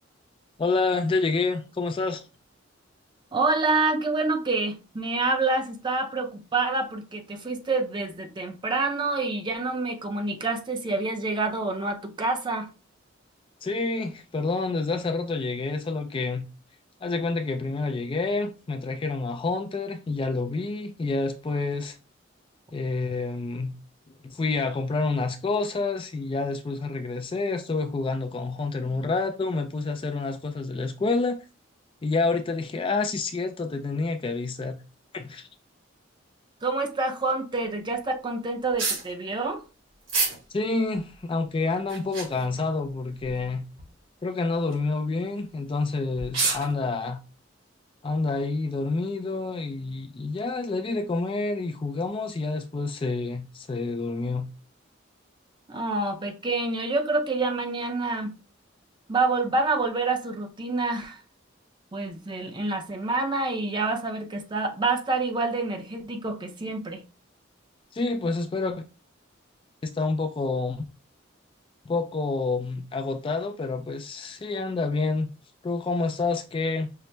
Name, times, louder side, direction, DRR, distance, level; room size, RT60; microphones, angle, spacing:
voice 1, 0.6-2.2 13.6-16.5 17.0-22.0 22.7-23.7 24.2-31.4 32.0-34.8 35.1-35.5 40.5-43.7 44.2-47.2 48.0-54.5 67.9-68.8 69.8-70.8 71.9-75.3 75.6-76.9, left 3 dB, 25° left, 0.3 m, -28 dB
voice 2, 3.3-12.7 36.6-39.6 55.7-58.3 59.1-61.2 61.9-67.0, right 3 dB, 25° right, 0.6 m, -27 dB
sound 1, 38.7-39.0 40.1-40.4 40.9-41.0 41.8-42.4 43.2-43.4 43.8-43.9 44.5-44.8 45.7-45.8 46.2-46.7, right 3 dB, 80° right, 2.0 m, -28 dB
5.5 x 2.0 x 3.2 m
head